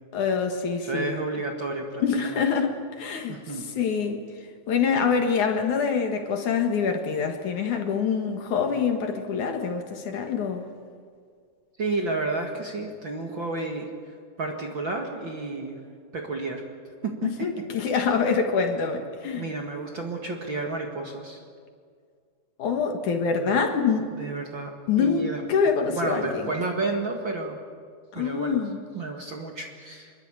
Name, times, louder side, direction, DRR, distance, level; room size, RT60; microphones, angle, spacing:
voice 1, 0.1-1.2 2.0-3.4 3.8-4.2 4.7-10.7 17.2-19.5 22.6-24.1 24.9-26.5 28.1-28.8, left 6 dB, 60° left, 5 dB, 2.9 m, -25 dB
voice 2, 0.8-2.5 3.3-3.7 11.8-15.8 16.1-16.6 17.0-17.5 19.3-21.4 24.2-24.7 25.0-25.4 25.9-27.6 28.1-28.6 28.9-30.1, right 3 dB, 40° right, 2 dB, 2.1 m, -31 dB
25.0 x 22.0 x 8.9 m, 2.1 s
omnidirectional pair, 4.2 m